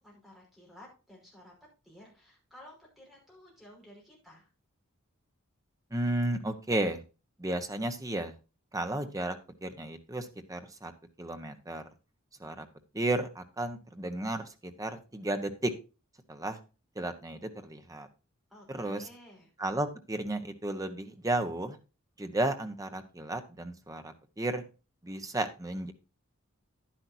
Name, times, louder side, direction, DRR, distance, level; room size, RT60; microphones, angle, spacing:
voice 1, 0.0-1.6 1.8-4.5 18.5-19.5, left 1 dB, ahead, -2 dB, 5.3 m, -54 dB
voice 2, 5.9-7.0 7.4-8.3 8.7-10.9 11.2-11.8 12.4-12.6 12.9-15.7 16.3-16.6 16.9-18.1 18.7-19.1 19.6-21.8 22.2-24.6 25.0-25.9, right 1 dB, 15° right, 8 dB, 1.1 m, -33 dB
10.5 x 10.5 x 2.7 m, 0.31 s
head